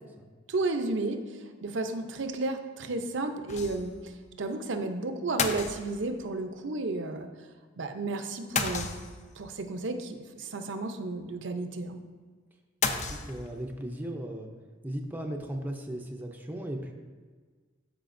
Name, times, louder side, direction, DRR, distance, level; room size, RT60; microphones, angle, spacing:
voice 1, 0.5-1.2 1.6-3.9 4.4-7.3 7.8-8.9 9.4-12.0, right 3 dB, 70° right, 7 dB, 0.6 m, -32 dB
sound 1, 3.5-4.0 4.3-4.4 5.4-6.3 8.6-9.4 12.8-13.7, left 5 dB, 40° left, 0.5 m, -32 dB
voice 2, 12.9-14.5 14.8-16.9, right 1 dB, 10° right, 2 dB, 0.5 m, -37 dB
12.5 x 5.0 x 2.6 m, 1.5 s
head